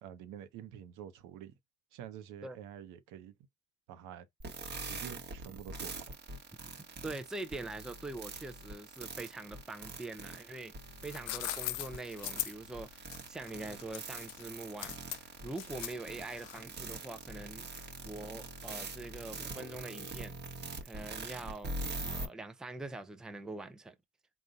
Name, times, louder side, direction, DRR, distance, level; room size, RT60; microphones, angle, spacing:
voice 1, 0.0-1.5 1.9-3.3 3.9-4.3 4.8-6.2, right 10 dB, 70° right, 0.8 m, -48 dB
sound 1, 4.4-22.3, right 2 dB, 35° right, 1.1 m, -43 dB
voice 2, 7.0-10.7 11.0-20.4 20.8-21.8 22.1-24.0, right 2 dB, ahead, 0.5 m, -44 dB
sound 2, 10.8-16.8, left 16 dB, 70° left, 0.5 m, -40 dB
3.9 x 2.3 x 3.9 m
supercardioid pair, 80°, 32 cm